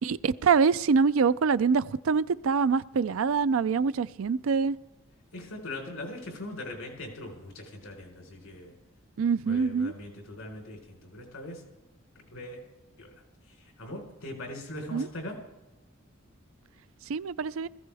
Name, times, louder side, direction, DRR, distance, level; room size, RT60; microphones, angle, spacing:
voice 1, 0.0-4.8 9.2-9.9 14.9-15.1 17.1-17.7, right 5 dB, 75° right, 16 dB, 0.4 m, -25 dB
voice 2, 5.3-8.7 9.4-11.6 12.3-12.6 13.0-13.1 13.5-15.4, left 1 dB, 85° left, 1 dB, 4.3 m, -41 dB
18.5 x 15.0 x 3.5 m, 1.0 s
head